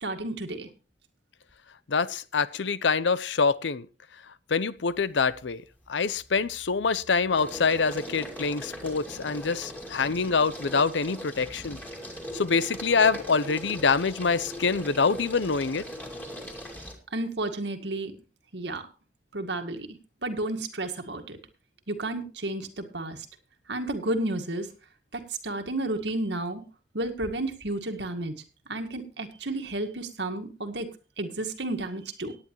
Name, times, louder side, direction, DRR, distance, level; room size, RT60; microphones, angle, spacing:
voice 1, 0.0-0.7 17.1-18.1 18.5-18.8 19.3-19.9 20.2-21.4 21.9-23.2 23.7-24.7 25.4-26.6 26.9-28.3 28.7-30.9 31.2-32.4, right 2 dB, 70° right, 6 dB, 2.0 m, -31 dB
voice 2, 1.9-3.9 4.5-5.6 5.9-11.8 12.3-15.9, left 5 dB, 85° left, 17 dB, 0.7 m, -25 dB
sound 1, 4.9-5.4 5.8-16.9, equal, 10° left, 2.5 m, -40 dB
17.5 x 10.0 x 3.0 m, 0.33 s
head